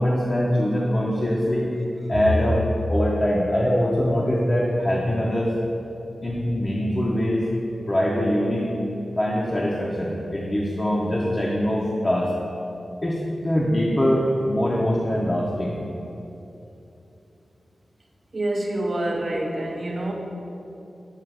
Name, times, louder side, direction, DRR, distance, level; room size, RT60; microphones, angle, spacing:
voice 1, 0.0-1.7 2.1-2.6 2.9-5.5 6.2-7.4 7.9-8.7 9.2-12.3 13.0-15.8, equal, 20° left, -4 dB, 0.6 m, -23 dB
voice 2, 18.3-20.1, right 1 dB, 40° right, 1 dB, 0.6 m, -26 dB
7.2 x 2.9 x 4.7 m, 2.8 s
wide cardioid pair, 105°, 0 cm